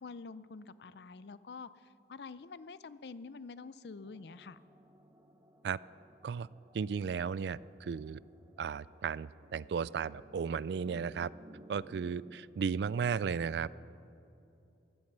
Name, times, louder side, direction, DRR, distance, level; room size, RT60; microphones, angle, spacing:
voice 1, 0.0-4.6, left 4 dB, 65° left, 16 dB, 0.5 m, -47 dB
sound 1, 4.0-12.4, right 1 dB, 20° right, 1.0 m, -58 dB
voice 2, 6.7-8.2 8.6-11.3 11.7-13.8, right 6 dB, 65° right, 21 dB, 0.3 m, -35 dB
15.5 x 11.5 x 6.7 m, 2.8 s
head